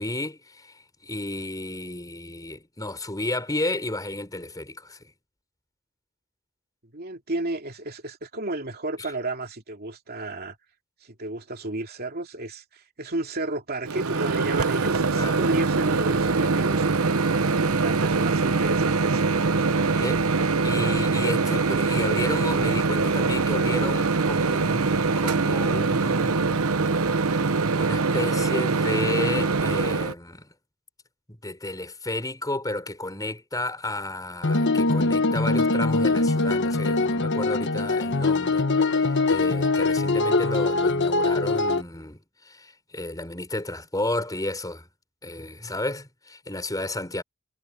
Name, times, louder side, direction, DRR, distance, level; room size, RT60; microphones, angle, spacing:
voice 1, 0.0-5.0 15.1-15.4 20.0-20.2 20.6-26.9 27.3-30.5 31.4-44.9 45.2-47.2, left 1 dB, 15° left, 4.5 m, -32 dB
voice 2, 6.9-10.6 11.0-16.9 17.3-20.3, right 2 dB, 45° right, 2.7 m, -33 dB
Microwave oven, 13.9-30.1, right 4 dB, 80° right, 0.9 m, -23 dB
sound 1, 34.4-41.8, left 3 dB, 55° left, 1.3 m, -22 dB
head